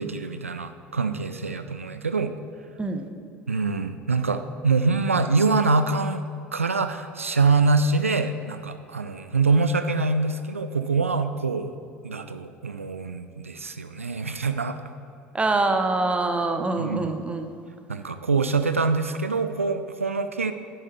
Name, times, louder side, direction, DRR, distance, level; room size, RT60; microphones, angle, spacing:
voice 1, 0.0-2.3 3.5-6.2 6.5-11.8 12.0-14.8 16.8-17.1 17.9-20.5, right 4 dB, 85° right, 9 dB, 0.4 m, -24 dB
voice 2, 15.3-17.5, right 2 dB, 15° right, 6 dB, 0.9 m, -25 dB
10.0 x 10.0 x 3.4 m, 2.4 s
figure-of-eight pair, 65°, 7 cm